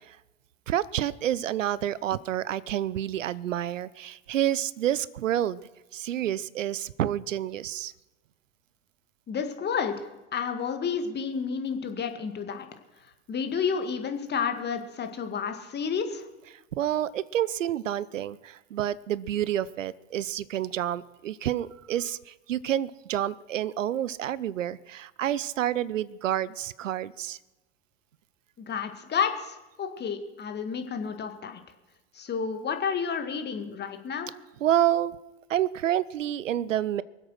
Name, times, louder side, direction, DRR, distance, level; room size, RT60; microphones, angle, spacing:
voice 1, 0.7-5.6 5.9-7.9 16.5-27.4 34.6-35.2 35.5-37.0, right 11 dB, 85° right, 20 dB, 0.6 m, -29 dB
voice 2, 9.3-10.1 10.3-12.7 13.3-16.3 28.6-31.6 32.1-34.3, left 6 dB, 25° left, 6 dB, 1.9 m, -30 dB
23.5 x 8.0 x 6.4 m, 1.0 s
hypercardioid pair, 90°, 37 cm